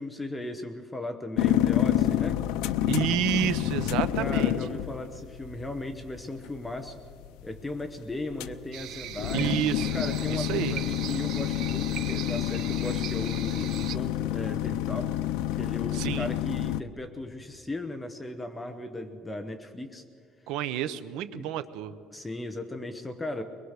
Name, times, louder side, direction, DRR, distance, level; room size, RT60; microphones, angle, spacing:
voice 1, 0.0-2.4 4.2-7.0 7.4-9.5 9.9-15.1 15.6-20.0 21.3-21.5 22.1-23.4, left 1 dB, 10° left, 7 dB, 0.9 m, -37 dB
sound 1, 1.4-16.8, left 12 dB, 85° left, 0.7 m, -29 dB
voice 2, 2.9-4.5 9.3-10.0 10.3-10.8 15.9-16.3 20.5-21.9, right 11 dB, 70° right, 12 dB, 1.0 m, -29 dB
sound 2, 8.7-14.0, right 12 dB, 50° right, 0.7 m, -39 dB
23.0 x 21.5 x 6.6 m, 2.3 s
cardioid pair, 180°, 0 cm